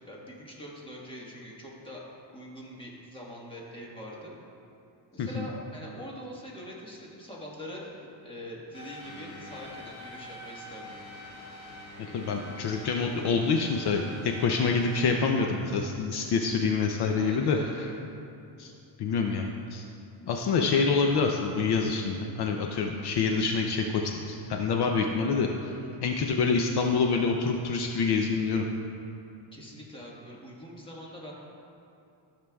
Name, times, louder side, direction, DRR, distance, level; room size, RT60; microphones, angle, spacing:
voice 1, 0.1-2.0 2.3-4.4 5.1-10.9 17.2-17.9 25.8-26.2 29.5-31.3, equal, 10° left, -4 dB, 1.4 m, -43 dB
sound 1, 8.7-15.2, equal, 35° left, 1.9 m, -45 dB
voice 2, 12.0-17.9 18.6-18.7 19.0-19.8 20.3-28.6, left 4 dB, 60° left, 3 dB, 0.6 m, -27 dB
14.0 x 6.7 x 2.3 m, 2.7 s
cardioid pair, 150°, 45 cm